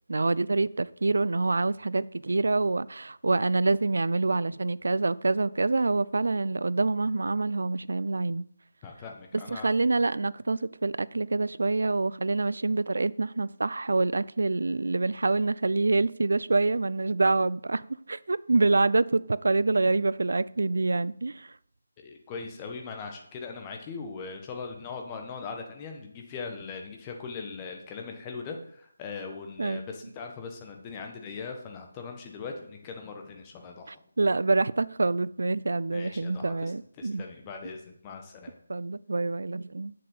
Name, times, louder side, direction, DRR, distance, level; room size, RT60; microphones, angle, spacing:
voice 1, 0.1-8.5 9.5-17.8 18.1-21.5 29.6-29.8 33.9-37.3 38.7-39.9, right 3 dB, 65° right, 0.4 m, -26 dB
voice 2, 8.8-9.7 22.0-34.0 35.9-36.7 37.0-38.6, left 5 dB, 20° left, 1.4 m, -40 dB
7.6 x 6.5 x 5.4 m
figure-of-eight pair, 155°, 0 cm